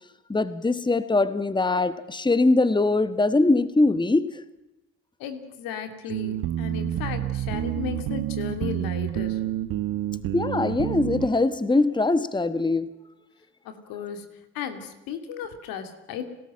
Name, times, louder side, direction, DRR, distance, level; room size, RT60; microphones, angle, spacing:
voice 1, 0.3-4.4 10.3-13.0, left 2 dB, 15° left, 14 dB, 1.3 m, -22 dB
voice 2, 5.2-9.4 13.6-14.3 14.5-16.3, left 8 dB, 80° left, 8 dB, 2.6 m, -35 dB
sound 1, 6.1-11.3, right 13 dB, 75° right, 1.3 m, -29 dB
30.0 x 13.5 x 7.5 m, 0.96 s
supercardioid pair, 55°, 34 cm